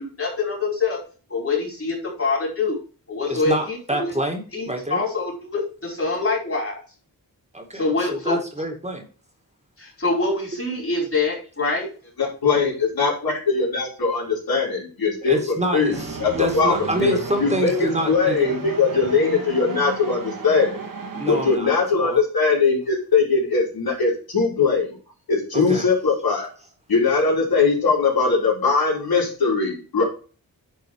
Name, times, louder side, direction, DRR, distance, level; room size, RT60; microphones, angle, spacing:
voice 1, 0.2-1.0 1.3-2.8 3.1-4.1 4.5-6.8 7.7-8.4 9.8-11.9, left 3 dB, 40° left, -2 dB, 4.6 m, -25 dB
voice 2, 3.3-5.0 7.5-9.0 15.2-18.5 21.1-22.2 25.5-25.9, right 1 dB, 20° right, 3 dB, 2.0 m, -27 dB
voice 3, 12.4-15.4 15.7-16.7 17.0-20.8 21.3-24.9 25.3-26.5 26.9-30.0, left 4 dB, 80° left, -3 dB, 4.2 m, -21 dB
sound 1, 15.9-21.6, right 4 dB, 65° right, 1.9 m, -33 dB
9.9 x 4.6 x 4.7 m, 0.37 s
wide cardioid pair, 100°, 36 cm